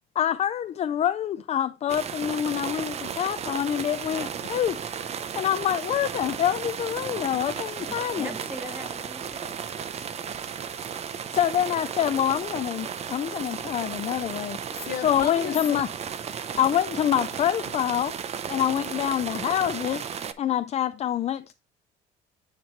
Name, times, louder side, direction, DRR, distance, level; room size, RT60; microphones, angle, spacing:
voice 1, 0.2-4.8 5.3-8.3 11.3-14.6 15.0-15.9 16.6-18.1 18.5-20.1 20.4-21.5, left 10 dB, 40° left, 0.4 m, -26 dB
sound 1, 1.9-20.3, right 7 dB, 40° right, 0.6 m, -34 dB
voice 2, 7.0-7.4 7.6-9.6, right 1 dB, 10° right, 1.3 m, -41 dB
voice 3, 14.7-15.8 16.3-16.5, left 10 dB, 65° left, 0.8 m, -34 dB
8.9 x 3.0 x 4.5 m
cardioid pair, 110°, 17 cm